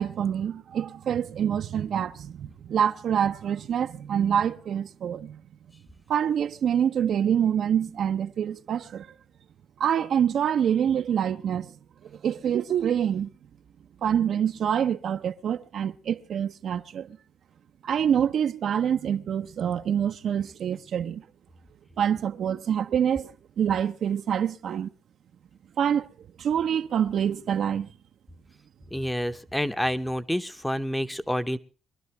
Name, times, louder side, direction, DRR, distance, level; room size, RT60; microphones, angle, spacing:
voice 1, 0.0-5.4 6.1-9.1 9.8-11.7 12.0-13.3 14.0-17.2 17.8-21.2 22.0-24.9 25.8-26.1 26.4-27.9, right 8 dB, 65° right, 0.7 m, -26 dB
voice 2, 28.9-31.6, equal, 5° left, 0.9 m, -28 dB
23.5 x 12.0 x 3.2 m
cardioid pair, 90°, 0 cm